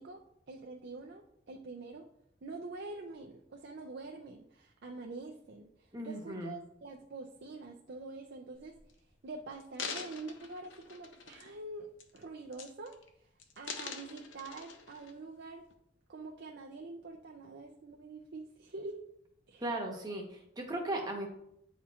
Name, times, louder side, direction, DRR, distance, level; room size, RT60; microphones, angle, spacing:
voice 1, 0.0-2.1 2.4-8.8 9.2-13.0 13.6-15.6 16.1-19.0 19.5-19.6, right 3 dB, 60° right, 1 dB, 0.5 m, -46 dB
voice 2, 5.9-6.6 19.6-21.3, right 1 dB, 20° right, 1 dB, 1.1 m, -37 dB
sound 1, 8.5-8.9 9.5-11.6 12.0-12.2 12.5-13.1 13.4-15.1 15.7-15.8, left 5 dB, 75° left, 0.7 m, -44 dB
9.4 x 4.3 x 2.4 m, 0.76 s
head